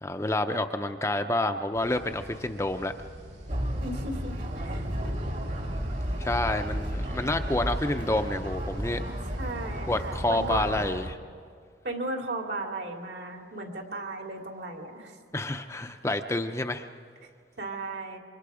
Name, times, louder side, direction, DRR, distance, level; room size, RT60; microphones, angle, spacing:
voice 1, 0.0-2.9 6.2-9.0 9.9-11.2 15.3-16.9, left 2 dB, 15° left, 6 dB, 0.6 m, -28 dB
sound 1, 1.7-10.7, equal, 85° right, 7.4 m, -46 dB
sound 2, 3.5-11.1, equal, 45° right, 2.0 m, -33 dB
voice 2, 3.8-4.4 4.6-4.9 9.3-10.9 11.8-15.2 17.6-18.2, right 2 dB, 65° right, 2 dB, 2.7 m, -35 dB
28.5 x 25.0 x 5.0 m, 2.1 s
head